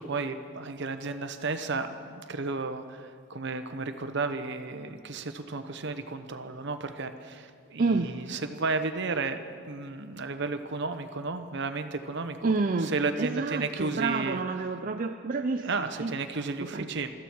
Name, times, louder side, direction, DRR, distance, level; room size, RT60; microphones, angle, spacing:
voice 1, 0.0-9.4 9.7-14.4 15.6-17.1, right 3 dB, 55° right, 9 dB, 1.0 m, -33 dB
voice 2, 7.8-8.2 12.4-15.7 16.0-16.1 16.7-16.9, right 3 dB, 40° right, 5 dB, 0.5 m, -29 dB
22.5 x 14.0 x 4.6 m, 2.2 s
head